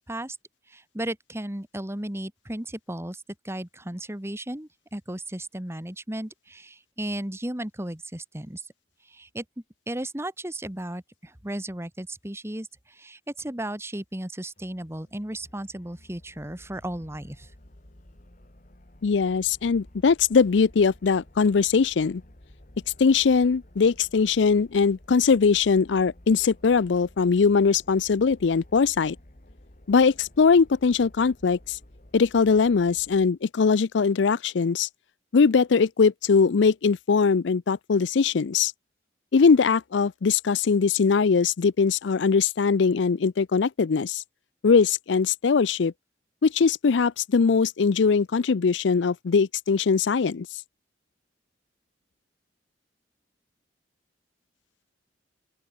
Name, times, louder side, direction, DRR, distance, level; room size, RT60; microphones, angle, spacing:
voice 1, 0.7-8.6 9.1-9.4 9.9-17.5, right 1 dB, 15° right, 1.6 m, -35 dB
sound 1, 14.6-33.3, left 1 dB, 45° left, 2.3 m, -52 dB
voice 2, 19.0-22.2 23.0-29.2 29.9-31.8 32.1-34.9 35.3-38.7 39.3-44.2 44.6-45.9 46.4-50.5, left 5 dB, 70° left, 0.5 m, -21 dB
open air
head